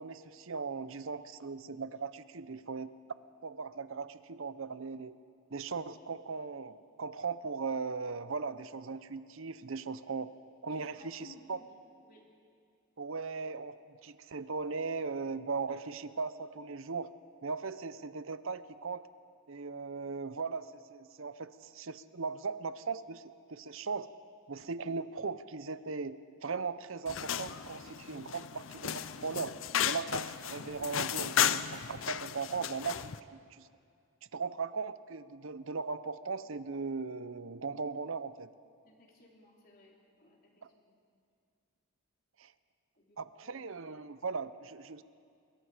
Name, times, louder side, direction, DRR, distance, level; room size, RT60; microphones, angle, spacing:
voice 1, 0.0-2.9 3.4-5.1 5.5-10.3 10.6-11.6 13.0-17.1 17.4-19.0 19.5-24.1 24.5-29.5 29.8-33.7 34.3-38.5 40.6-40.7 42.4-42.5 43.2-45.0, right 4 dB, 60° right, 13 dB, 0.7 m, -38 dB
voice 2, 10.7-11.8 12.0-12.3 15.7-15.8 38.8-41.0 43.0-43.6, left 2 dB, 40° left, -2 dB, 3.4 m, -59 dB
sound 1, 27.1-33.2, left 9 dB, 60° left, 0.5 m, -34 dB
24.5 x 22.0 x 5.0 m, 2.3 s
head